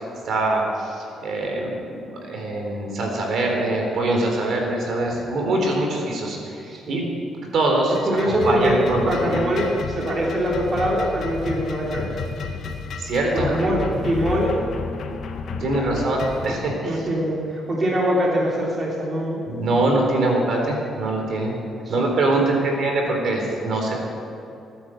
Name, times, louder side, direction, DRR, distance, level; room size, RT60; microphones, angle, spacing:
voice 1, 0.3-7.0 7.5-8.0 8.3-9.4 13.0-13.5 15.6-17.0 19.5-21.5 21.9-23.9, right 2 dB, 65° right, 1 dB, 3.9 m, -23 dB
voice 2, 6.7-7.0 8.0-12.1 13.3-14.5 15.6-19.4 21.7-21.9 22.5-22.8, equal, 40° right, -3 dB, 3.3 m, -24 dB
sound 1, 7.7-16.5, left 5 dB, 60° left, 1.7 m, -32 dB
18.0 x 10.0 x 7.9 m, 2.8 s
cardioid pair, 90°, 0 cm